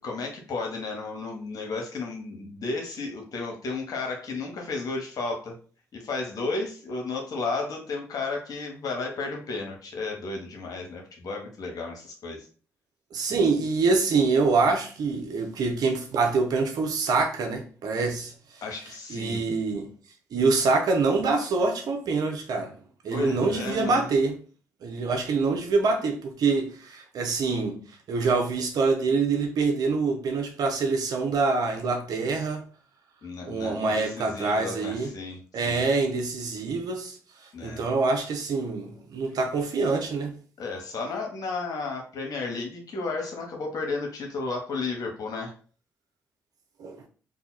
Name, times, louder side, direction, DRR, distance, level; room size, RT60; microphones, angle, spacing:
voice 1, 0.0-5.5 5.9-12.5 18.6-19.4 23.1-24.1 33.2-35.8 37.5-37.9 40.6-45.5, left 3 dB, 65° left, 1.1 m, -33 dB
voice 2, 13.1-18.3 19.1-19.9 20.3-22.7 23.0-24.3 24.8-27.8 28.1-32.6 33.5-35.1 35.5-37.2 37.6-40.3 46.8-47.0, right 4 dB, 70° right, 0.8 m, -25 dB
2.7 x 2.5 x 4.1 m
hypercardioid pair, 45°, 7 cm